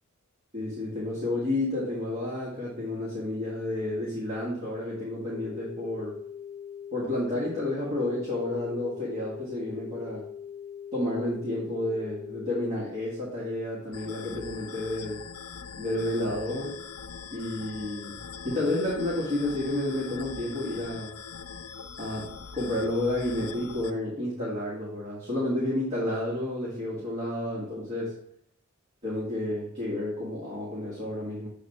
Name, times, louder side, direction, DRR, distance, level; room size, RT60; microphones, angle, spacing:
voice 1, 0.5-6.1 6.9-10.2 10.9-15.2 15.8-16.8 17.3-18.2 18.4-21.1 22.0-28.1 29.0-31.5, left 1 dB, 30° right, -6 dB, 1.7 m, -31 dB
sound 1, 5.3-12.7, left 8 dB, 35° left, 0.8 m, -42 dB
sound 2, 13.9-23.9, left 6 dB, 75° left, 0.4 m, -42 dB
7.1 x 3.4 x 5.3 m, 0.67 s
head